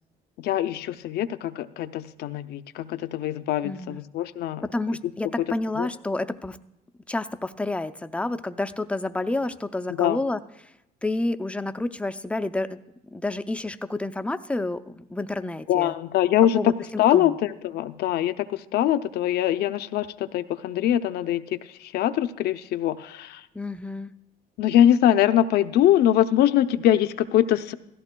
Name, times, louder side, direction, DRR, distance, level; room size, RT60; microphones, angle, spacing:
voice 1, 0.4-4.7 5.4-5.5 5.8-5.9 10.0-10.2 15.7-16.7 17.0-23.5 24.6-27.7, left 11 dB, 70° left, 10 dB, 0.6 m, -23 dB
voice 2, 3.6-4.0 4.6-6.6 7.1-10.4 11.0-12.8 13.1-15.9 16.5-16.7 17.1-17.4 23.5-24.1, left 2 dB, 5° left, 10 dB, 0.4 m, -29 dB
16.5 x 14.5 x 2.2 m, 0.87 s
cardioid pair, 110°, 17 cm